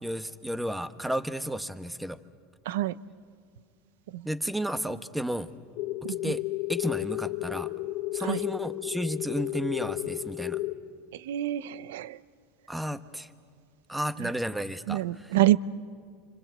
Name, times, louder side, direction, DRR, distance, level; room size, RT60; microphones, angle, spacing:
voice 1, 0.0-2.2 4.2-5.5 6.2-6.4 6.7-7.7 8.1-10.6 12.7-13.3 13.9-15.0, equal, 5° right, 10 dB, 1.3 m, -32 dB
sound 1, 5.8-10.7, left 18 dB, 60° left, 1.4 m, -33 dB
voice 2, 6.0-6.3 8.2-8.4 11.1-12.2 14.2-14.3 14.9-15.6, right 15 dB, 80° right, 18 dB, 0.6 m, -27 dB
29.0 x 25.5 x 8.0 m, 2.1 s
hypercardioid pair, 95°, 0 cm